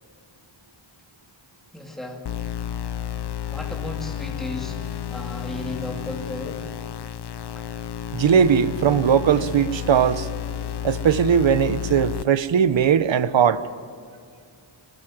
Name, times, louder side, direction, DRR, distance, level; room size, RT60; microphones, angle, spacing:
voice 1, 1.7-2.2 3.4-6.7 7.6-7.7, left 1 dB, ahead, 2.3 m, -35 dB
sound 1, 2.3-12.2, left 9 dB, 55° left, 0.7 m, -31 dB
voice 2, 8.1-10.3 10.8-13.6, right 8 dB, 70° right, 0.9 m, -19 dB
22.0 x 20.5 x 8.9 m
wide cardioid pair, 165°, 48 cm